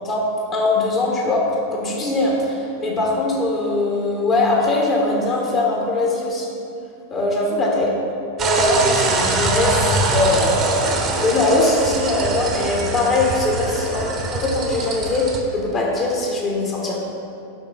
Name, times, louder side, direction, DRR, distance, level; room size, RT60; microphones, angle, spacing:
voice 1, 0.5-6.6 7.1-7.9 8.4-17.0, left 2 dB, 30° left, -2 dB, 1.6 m, -21 dB
sound 1, 8.4-15.4, right 3 dB, 25° right, 1.0 m, -23 dB
8.9 x 6.1 x 4.3 m, 2.6 s
figure-of-eight pair, 90°, 0 cm